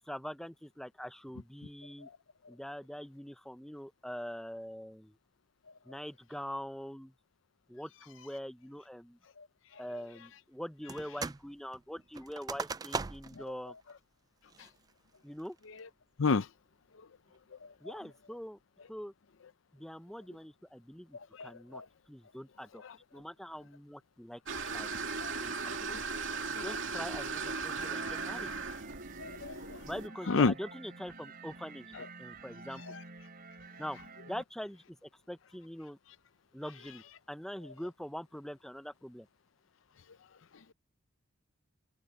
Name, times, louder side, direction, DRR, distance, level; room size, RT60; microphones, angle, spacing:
voice 1, 0.0-2.1 2.5-5.2 5.9-7.1 7.7-9.2 9.8-13.7 15.2-15.6 17.8-18.6 18.9-19.1 19.7-21.8 22.1-22.8 23.1-24.4 24.7-24.9 25.4-25.7 26.6-28.5 29.8-33.0 33.8-34.0 34.3-36.0 36.5-39.3, equal, ahead, 0.7 m, -43 dB
sound 1, 10.9-11.5 11.7-13.4 13.9-14.0 14.5-14.9 15.4-15.8, right 4 dB, 20° right, 0.3 m, -39 dB
voice 2, 21.4-21.8 25.2-25.3 25.9-26.0 26.5-26.6 29.2-29.8 30.3-30.5, left 4 dB, 75° left, 0.6 m, -29 dB
sound 2, 24.5-30.1, right 4 dB, 70° right, 2.7 m, -37 dB
sound 3, 27.8-34.4, right 3 dB, 50° right, 5.1 m, -50 dB
head